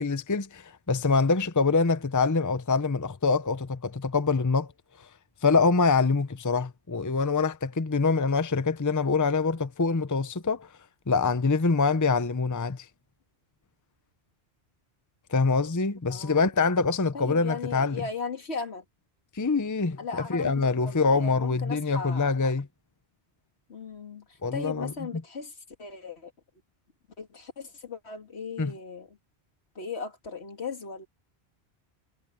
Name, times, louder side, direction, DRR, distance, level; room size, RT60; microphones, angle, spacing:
voice 1, 0.0-4.7 5.4-10.7 11.1-12.9 15.3-18.0 19.3-22.7 24.4-24.9 28.6-28.7, left 4 dB, 20° left, 0.7 m, -25 dB
voice 2, 16.1-16.4 17.1-18.8 20.0-22.5 23.7-26.3 27.2-29.2 29.8-31.1, left 5 dB, 75° left, 2.4 m, -37 dB
omnidirectional pair, 1.1 m